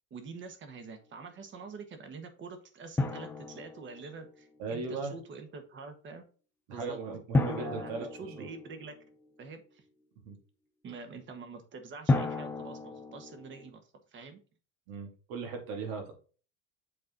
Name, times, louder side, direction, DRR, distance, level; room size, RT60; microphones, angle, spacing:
voice 1, 0.1-6.2 6.7-7.0 7.6-9.0 9.4-9.8 10.8-13.8 14.1-14.4, right 4 dB, 30° right, 7 dB, 1.3 m, -45 dB
Drum, 3.0-4.5 7.3-9.1 12.1-13.7, left 3 dB, 5° left, 0.4 m, -32 dB
voice 2, 4.6-5.2 6.7-8.1 8.4-8.5 10.2-10.4 14.9-16.1, right 4 dB, 75° right, 2 dB, 2.7 m, -37 dB
7.4 x 4.2 x 3.9 m, 0.37 s
cardioid pair, 145°, 37 cm